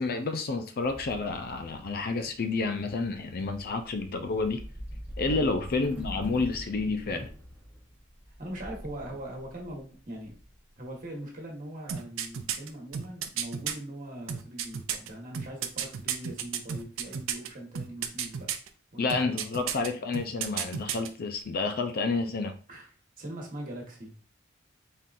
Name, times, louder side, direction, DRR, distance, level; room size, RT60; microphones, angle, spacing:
voice 1, 0.0-4.6 5.2-7.3 19.0-22.6, left 3 dB, 50° left, 0.5 m, -30 dB
sound 1, 0.8-11.0, equal, 5° right, 0.8 m, -44 dB
voice 2, 5.2-5.6 8.4-10.3 10.8-18.5 18.9-20.0 22.7-22.9 23.2-24.2, right 1 dB, 45° right, 1.4 m, -41 dB
sound 2, 11.9-13.7 14.3-17.5 17.7-18.7 19.1-19.9 20.1-21.1 21.4-21.5, right 8 dB, 80° right, 0.5 m, -32 dB
4.2 x 3.7 x 2.5 m
head